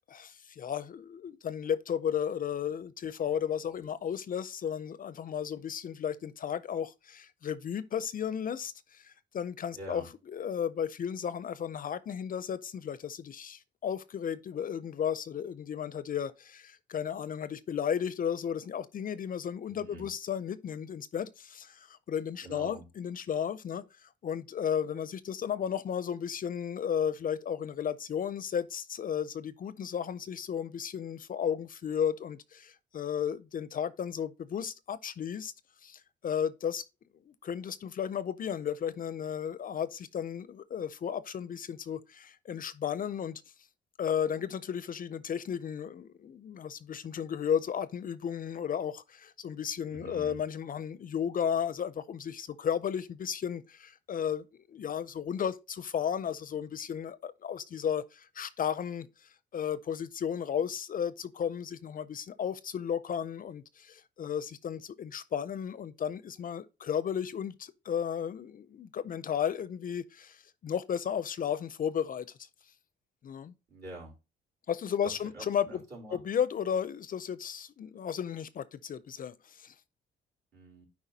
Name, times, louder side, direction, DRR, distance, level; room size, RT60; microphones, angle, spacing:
voice 1, 0.0-35.5 35.8-36.8 37.3-43.4 44.0-59.1 59.5-72.5 73.2-73.5 74.7-75.8 76.1-79.7, left 8 dB, 45° left, 0.5 m, -34 dB
voice 2, 9.7-10.1 19.7-20.1 22.4-22.9 49.9-50.4 73.7-74.1 75.0-76.2 80.5-80.9, right 2 dB, 55° right, 3.7 m, -46 dB
11.5 x 4.8 x 2.7 m
cardioid pair, 90°, 20 cm